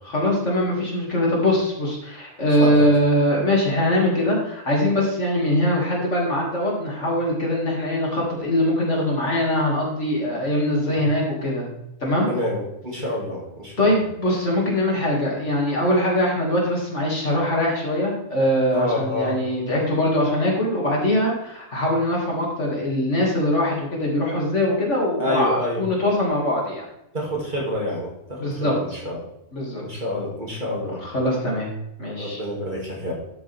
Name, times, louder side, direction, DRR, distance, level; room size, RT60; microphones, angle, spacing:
voice 1, 0.0-12.3 13.8-26.8 28.4-29.0 29.5-30.0 31.0-31.7 32.0-32.4, left 1 dB, 50° left, -3 dB, 2.7 m, -22 dB
voice 2, 2.6-2.9 10.8-11.0 12.3-14.0 18.7-19.4 25.2-25.8 27.1-29.2 29.8-31.0 32.2-33.1, left 1 dB, 30° right, -3 dB, 2.6 m, -28 dB
12.0 x 7.2 x 3.5 m, 0.83 s
omnidirectional pair, 1.6 m